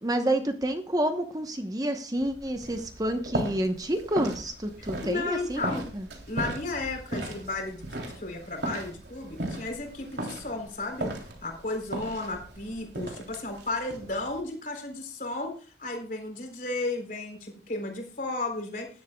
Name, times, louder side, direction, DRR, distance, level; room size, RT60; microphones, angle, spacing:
voice 1, 0.0-6.1, right 1 dB, 20° right, 6 dB, 1.0 m, -29 dB
sound 1, 2.2-14.4, right 1 dB, 70° right, 3.2 m, -37 dB
voice 2, 5.0-5.9 6.3-7.8 8.2-11.1 11.4-18.9, left 2 dB, 45° left, 3 dB, 3.9 m, -34 dB
18.5 x 11.5 x 2.3 m, 0.38 s
head